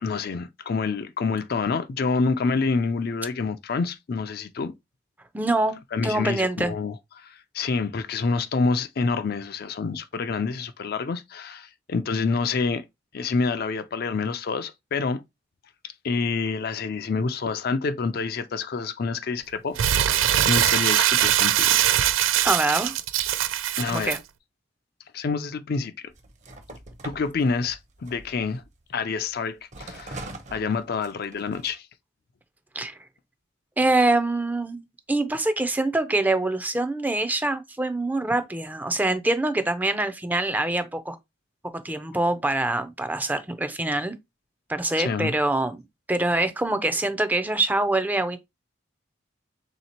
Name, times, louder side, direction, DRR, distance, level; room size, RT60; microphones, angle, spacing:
voice 1, 0.0-4.7 5.9-12.8 13.1-15.2 16.0-22.0 23.8-24.2 25.1-26.1 27.0-28.6 28.9-31.9 45.0-45.3, left 4 dB, 50° left, 0.4 m, -27 dB
voice 2, 5.3-6.7 22.4-22.9 23.9-24.2 32.7-33.0 33.8-41.2 41.7-44.1 44.7-45.8 46.1-48.4, right 2 dB, 10° right, 0.4 m, -25 dB
Crumpling crinkling, 19.8-24.2, right 11 dB, 90° right, 0.4 m, -22 dB
sound 1, 26.1-29.2 29.7-31.7, right 2 dB, 40° right, 0.8 m, -42 dB
3.3 x 2.8 x 4.3 m
head